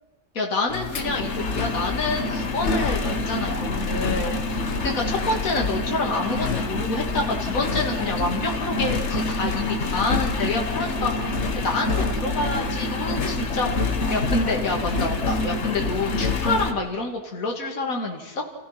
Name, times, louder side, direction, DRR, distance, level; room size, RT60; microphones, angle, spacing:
voice 1, 0.3-4.4 4.6-11.1 11.5-18.4, left 2 dB, 65° left, 1 dB, 2.6 m, -27 dB
Engine, 0.7-16.7, left 3 dB, 50° left, 1.7 m, -26 dB
29.5 x 15.5 x 5.8 m, 1.1 s
omnidirectional pair, 1.6 m